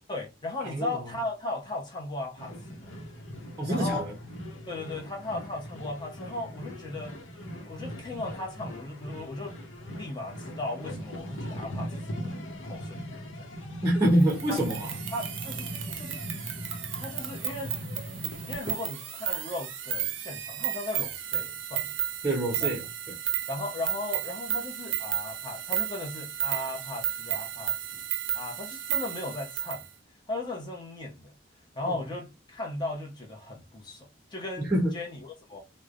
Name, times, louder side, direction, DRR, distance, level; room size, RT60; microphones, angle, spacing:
voice 1, 0.1-2.9 3.7-4.1 4.7-7.2 7.6-9.6 9.9-12.4 12.6-13.5 14.5-14.6 15.1-15.7 16.0-16.2 17.0-17.7 18.5-21.9 22.6-22.7 23.5-28.0 28.3-29.8 30.3-31.3 31.8-34.7 34.9-35.6, left 2 dB, 20° left, 0.8 m, -37 dB
voice 2, 0.6-1.0 3.6-4.1 13.8-14.9 22.2-23.2 31.9-32.0 34.6-34.9, right 1 dB, 15° right, 0.7 m, -26 dB
sound 1, 2.4-18.6, equal, 80° left, 0.8 m, -40 dB
sound 2, 14.2-29.8, right 10 dB, 75° right, 0.5 m, -33 dB
3.1 x 2.1 x 2.4 m
head